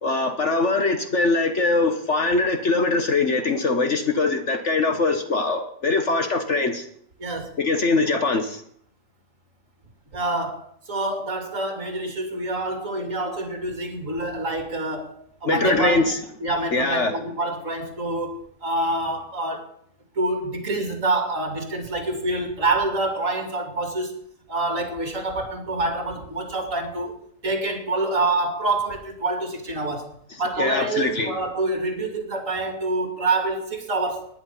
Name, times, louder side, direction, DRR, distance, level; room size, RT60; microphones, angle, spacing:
voice 1, 0.0-6.8 7.6-8.6 15.4-16.2 16.7-17.1 30.6-31.3, left 3 dB, 45° left, 1.6 m, -22 dB
voice 2, 7.2-7.5 10.1-16.0 16.4-19.7 20.2-24.1 24.5-27.1 27.4-34.3, right 2 dB, 50° right, 3.0 m, -26 dB
19.0 x 10.0 x 5.6 m
omnidirectional pair, 1.8 m